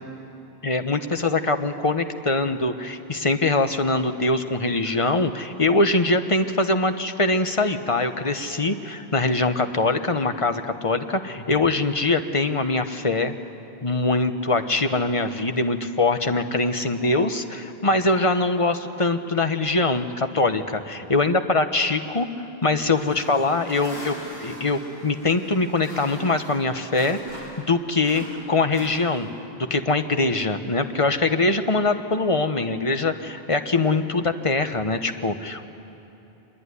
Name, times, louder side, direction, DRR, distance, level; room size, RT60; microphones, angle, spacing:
voice 1, 0.6-13.3 13.8-27.2 27.6-29.3 29.6-35.7, left 3 dB, 30° left, 8 dB, 1.1 m, -23 dB
sound 1, 22.9-27.7 28.0-29.5, equal, 85° left, 6.1 m, -41 dB
25.0 x 21.0 x 9.9 m, 2.9 s
omnidirectional pair, 1.1 m